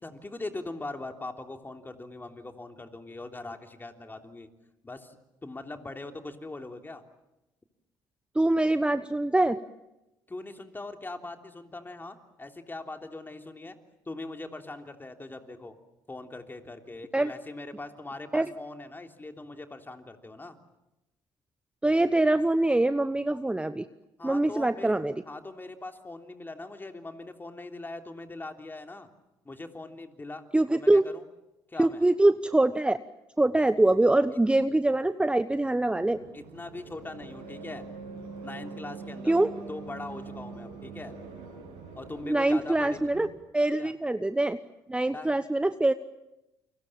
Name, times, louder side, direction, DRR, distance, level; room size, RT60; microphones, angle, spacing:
voice 1, 0.0-4.5 4.8-5.2 5.4-7.0 10.3-13.8 14.0-15.8 16.1-20.6 24.2-24.9 25.2-29.1 29.4-30.4 30.7-31.2 31.7-32.0 36.3-37.9 38.4-41.1 41.9-43.1 43.8-43.9 45.1-45.3, left 2 dB, 20° left, 5 dB, 3.3 m, -41 dB
voice 2, 8.3-9.6 17.1-17.3 18.3-18.5 21.8-23.9 24.2-25.1 30.5-31.0 31.8-33.0 33.4-36.2 39.3-39.5 42.2-43.3 43.5-44.6 44.9-45.9, right 2 dB, 10° right, 12 dB, 1.0 m, -24 dB
sound 1, 35.9-43.3, right 4 dB, 85° right, 7.4 m, -43 dB
29.5 x 24.5 x 7.5 m, 0.93 s
hypercardioid pair, 60°, 10 cm